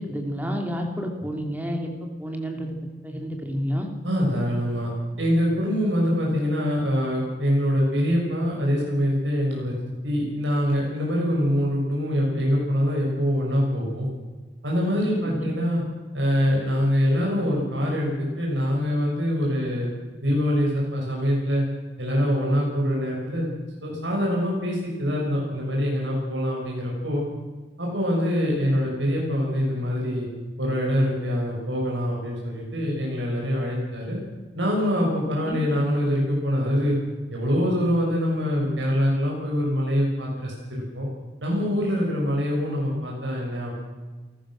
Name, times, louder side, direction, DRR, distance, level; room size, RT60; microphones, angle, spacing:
voice 1, 0.0-1.9 2.2-2.7 3.0-3.9 15.2-15.4 35.4-35.6, equal, 10° right, 3 dB, 3.0 m, -30 dB
voice 2, 4.0-4.9 5.2-9.7 10.0-14.1 14.6-15.8 16.1-19.9 20.2-21.6 22.0-23.5 23.8-27.2 27.8-30.3 30.6-34.2 34.5-36.9 37.3-41.1 41.4-43.7, equal, 90° right, -2 dB, 6.3 m, -24 dB
28.5 x 14.5 x 6.4 m, 1.3 s
head